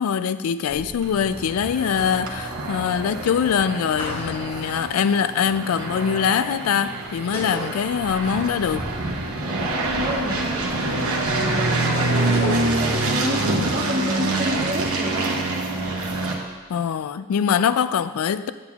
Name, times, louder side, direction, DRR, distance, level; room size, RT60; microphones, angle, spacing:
voice 1, 0.0-8.9 16.7-18.5, left 7 dB, 85° left, 13 dB, 0.3 m, -23 dB
sound 1, 0.7-16.9, equal, 10° right, 0.8 m, -41 dB
sound 2, 1.0-16.3, right 2 dB, 80° right, 1.0 m, -26 dB
sound 3, 3.9-4.6 7.3-8.4 8.6-8.7 12.3-13.1, equal, 35° left, 2.5 m, -32 dB
voice 2, 9.4-11.1 11.4-13.5 13.7-15.4, equal, 40° right, -9 dB, 1.8 m, -31 dB
8.8 x 8.6 x 2.4 m, 1.3 s
head